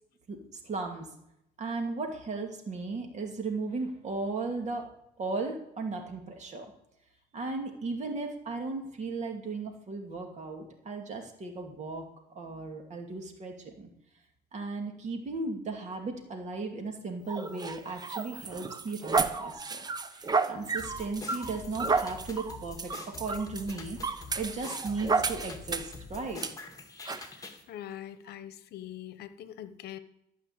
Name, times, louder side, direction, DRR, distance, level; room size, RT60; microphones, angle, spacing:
voice 1, 0.3-1.1 1.6-4.9 5.2-6.7 7.3-12.1 12.3-13.9 14.5-19.8 20.1-24.0 24.3-26.5, right 3 dB, 45° right, 3 dB, 2.6 m, -36 dB
sound 1, 17.3-26.0 26.4-26.5 27.1-27.3, right 4 dB, 25° right, 0.8 m, -32 dB
sound 2, 20.8-27.6, left 4 dB, 20° left, 1.9 m, -45 dB
voice 2, 27.2-30.0, left 11 dB, 70° left, 13 dB, 0.9 m, -43 dB
12.5 x 5.7 x 8.7 m, 0.81 s
cardioid pair, 110°, 17 cm